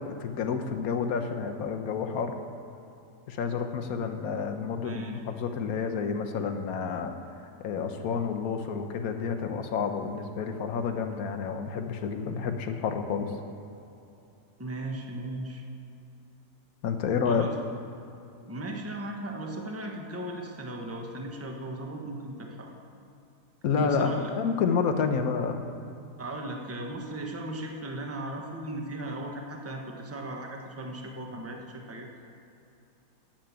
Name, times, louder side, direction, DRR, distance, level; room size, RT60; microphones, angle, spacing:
voice 1, 0.0-2.3 3.3-7.1 7.6-13.3 16.8-17.4 23.6-25.6, left 5 dB, 65° left, 6 dB, 1.3 m, -29 dB
voice 2, 14.6-15.6 17.2-17.5 18.5-22.7 23.8-24.3 26.2-32.1, right 1 dB, 10° right, 2 dB, 1.0 m, -37 dB
10.5 x 7.6 x 8.8 m, 2.8 s
omnidirectional pair, 1.7 m